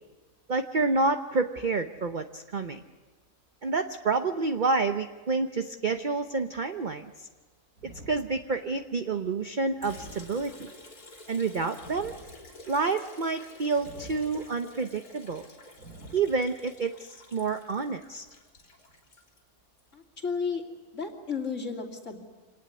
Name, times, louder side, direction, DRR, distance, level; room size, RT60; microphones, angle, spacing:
voice 1, 0.5-2.8 3.6-7.3 7.8-10.7 11.3-12.1 12.7-15.5 16.1-18.3, right 4 dB, 40° right, 7 dB, 0.8 m, -29 dB
sound 1, 7.8-8.8 9.8-10.8 11.8-12.8 13.8-14.8 15.8-16.8, right 1 dB, 80° right, 3.9 m, -49 dB
Liquid, 9.8-19.9, left 2 dB, 75° left, 4.3 m, -51 dB
voice 2, 19.9-20.6 20.9-22.2, left 5 dB, 50° left, 2 dB, 3.1 m, -33 dB
26.5 x 19.0 x 9.6 m, 1.3 s
omnidirectional pair, 1.6 m